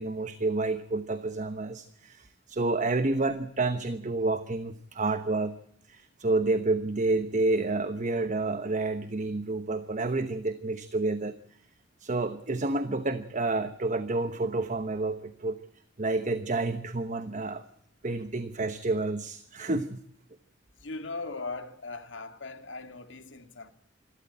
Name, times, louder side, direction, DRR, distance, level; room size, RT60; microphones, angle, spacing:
voice 1, 0.0-5.5 5.9-11.3 12.0-15.6 16.0-17.6 18.0-20.0, right 2 dB, 40° right, 1.1 m, -29 dB
voice 2, 20.8-23.7, left 3 dB, 70° left, 2.3 m, -39 dB
27.0 x 13.0 x 8.7 m
head